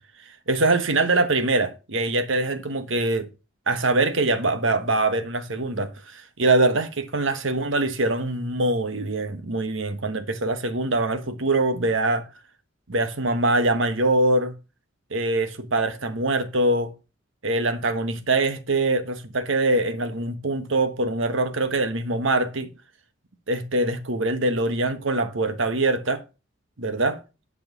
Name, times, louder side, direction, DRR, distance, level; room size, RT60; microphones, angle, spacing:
voice 1, 0.5-3.3 3.7-12.2 12.9-14.5 15.1-16.9 17.4-22.7 23.5-26.2 26.8-27.2, right 2 dB, 65° right, 1.2 m, -23 dB
11.0 x 4.9 x 5.9 m
head